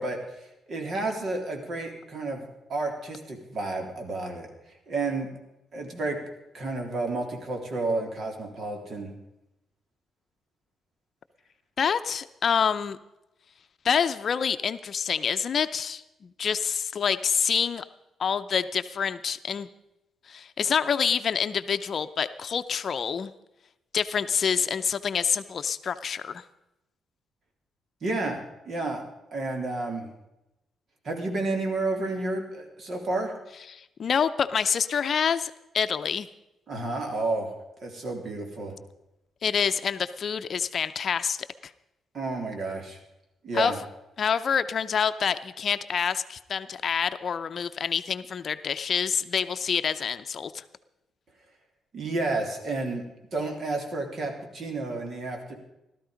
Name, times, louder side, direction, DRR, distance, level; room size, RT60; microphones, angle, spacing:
voice 1, 0.0-4.5 4.9-5.3 5.7-6.2 6.5-9.1 28.0-28.4 28.6-29.0 29.3-30.1 31.0-33.3 36.7-37.5 37.8-38.7 42.1-43.0 43.4-43.8 51.9-53.0 53.3-55.5, right 2 dB, 55° right, 3 dB, 3.3 m, -31 dB
voice 2, 11.8-13.0 13.8-17.8 18.2-19.7 20.3-23.3 23.9-26.4 33.7-36.3 39.4-41.4 43.5-43.7 44.2-50.6, left 7 dB, 50° left, 11 dB, 0.6 m, -27 dB
16.5 x 13.0 x 5.1 m, 0.92 s
cardioid pair, 115°, 0 cm